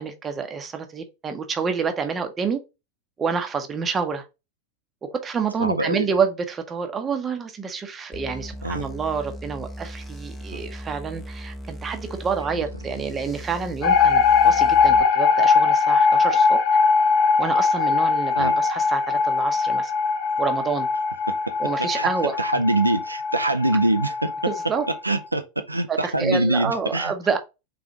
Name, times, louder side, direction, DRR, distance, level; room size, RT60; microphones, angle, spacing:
voice 1, 0.0-2.6 3.2-4.2 5.1-16.6 17.4-19.9 20.4-20.9 21.6-22.4 24.5-24.8 25.9-27.4, right 5 dB, 20° right, 0.7 m, -28 dB
voice 2, 5.6-6.0 8.6-8.9 10.5-10.6 18.4-18.5 21.8-22.1 22.4-24.5 25.0-27.1, right 2 dB, 85° right, 0.4 m, -24 dB
sound 1, 8.1-15.0, equal, 15° left, 0.7 m, -38 dB
sound 2, 13.8-25.0, left 5 dB, 50° left, 0.6 m, -20 dB
3.8 x 3.3 x 3.6 m
figure-of-eight pair, 90°, 0 cm